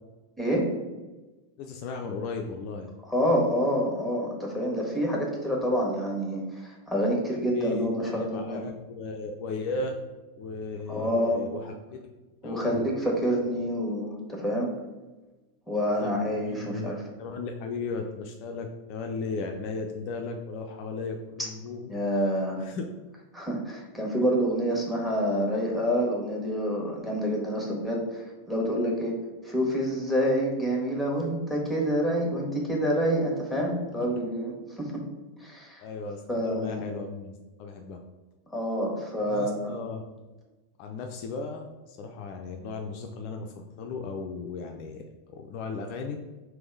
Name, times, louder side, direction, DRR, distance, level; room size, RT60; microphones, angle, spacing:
voice 1, 0.4-0.7 3.1-8.6 10.9-11.5 12.4-14.7 15.7-17.0 21.9-22.6 23.3-29.1 29.4-35.0 35.4-35.8 36.3-36.8 38.5-39.7, equal, 5° right, -2 dB, 1.3 m, -27 dB
voice 2, 1.6-2.9 7.5-10.0 10.4-12.0 12.4-12.9 16.0-16.9 17.2-22.0 22.6-22.9 34.0-34.1 35.8-38.0 39.2-40.0 40.8-46.2, left 4 dB, 45° left, 3 dB, 0.4 m, -36 dB
3.5 x 3.2 x 4.6 m, 1.2 s
figure-of-eight pair, 90°, 0 cm